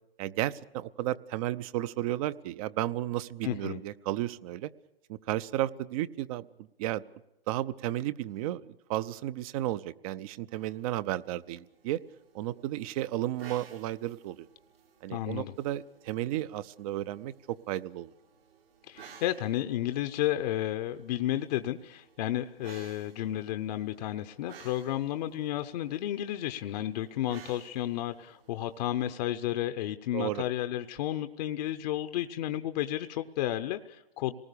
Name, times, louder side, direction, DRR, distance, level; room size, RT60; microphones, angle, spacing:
voice 1, 0.2-4.7 5.1-6.5 6.8-7.0 7.5-12.0 12.3-14.5 15.0-18.1 30.1-30.4, right 14 dB, 35° right, 16 dB, 0.7 m, -33 dB
voice 2, 3.4-3.8 15.1-15.5 18.9-34.4, left 13 dB, 45° left, 9 dB, 0.9 m, -32 dB
sound 1, 10.5-29.2, right 6 dB, 80° right, 3.5 m, -56 dB
26.5 x 19.5 x 6.9 m, 0.88 s
hypercardioid pair, 125°, 29 cm